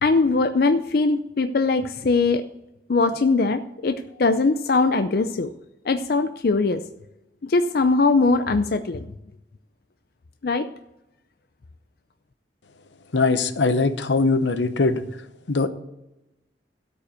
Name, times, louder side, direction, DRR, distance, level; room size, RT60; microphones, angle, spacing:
voice 1, 0.0-2.4 2.9-5.5 5.9-6.8 7.4-9.0 10.4-10.7, left 3 dB, 55° left, 9 dB, 0.5 m, -21 dB
voice 2, 13.1-15.0 15.5-15.7, left 3 dB, 85° left, 11 dB, 0.8 m, -21 dB
12.5 x 5.4 x 8.1 m, 0.94 s
head